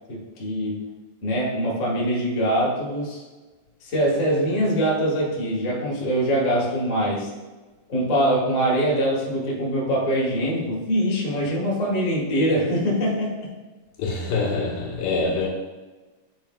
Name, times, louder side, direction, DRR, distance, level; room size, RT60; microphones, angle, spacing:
voice 1, 0.1-0.9 1.2-3.2 3.8-7.3 7.9-13.5, equal, 55° left, 0.8 m, -23 dB
voice 2, 14.0-15.5, left 3 dB, 75° left, 3.2 m, -25 dB
8.9 x 5.0 x 2.3 m
omnidirectional pair, 4.2 m